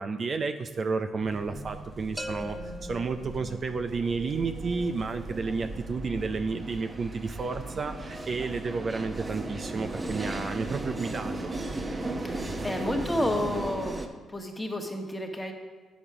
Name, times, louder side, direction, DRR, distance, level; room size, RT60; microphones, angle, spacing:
voice 1, 0.0-11.5, right 4 dB, 45° right, 7 dB, 0.5 m, -31 dB
sound 1, 1.2-14.1, right 2 dB, 25° right, 1.0 m, -37 dB
sound 2, 2.2-4.0, left 1 dB, 5° right, 0.8 m, -40 dB
voice 2, 12.2-14.0 14.3-15.5, left 1 dB, 15° left, 2 dB, 1.5 m, -30 dB
9.3 x 7.2 x 4.9 m, 1.3 s
cardioid pair, 90°, 0 cm